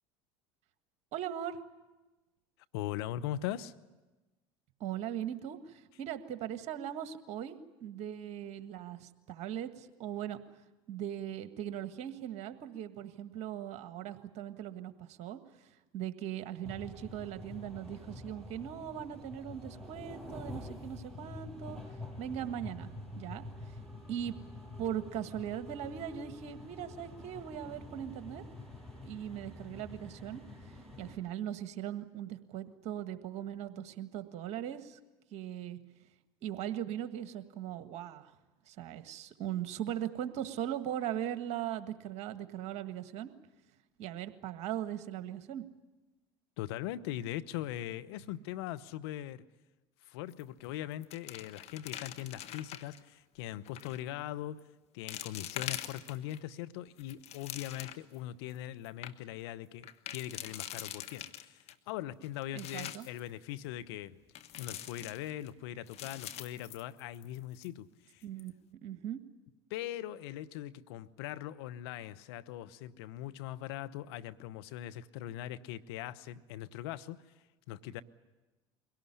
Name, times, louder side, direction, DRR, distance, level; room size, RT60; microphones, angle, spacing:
voice 1, 1.1-1.6 4.8-10.4 10.9-21.8 22.2-22.9 23.1-23.4 24.1-24.3 24.8-28.4 29.0-30.4 31.0-35.0 35.3-35.8 36.4-38.3 38.7-43.3 44.0-45.6 62.5-63.1 68.2-68.5 68.8-69.2, right 10 dB, 55° right, 9 dB, 1.7 m, -39 dB
voice 2, 2.7-3.7 46.6-49.4 50.0-54.6 54.9-68.3 69.7-78.0, left 13 dB, 75° left, 13 dB, 0.9 m, -41 dB
sound 1, 16.6-31.2, left 2 dB, 5° left, 6.4 m, -47 dB
sound 2, 50.3-50.7 50.9-53.0 53.7-54.0 54.6-54.7 55.1-56.4 56.9-58.2 58.6-58.7 58.9-59.1 59.8-61.7 62.2-63.2 64.4-65.5 65.9-67.4 67.6-67.7 68.2-68.5, left 11 dB, 50° left, 1.4 m, -44 dB
23.0 x 17.5 x 10.0 m, 1.2 s
hypercardioid pair, 80°, 14 cm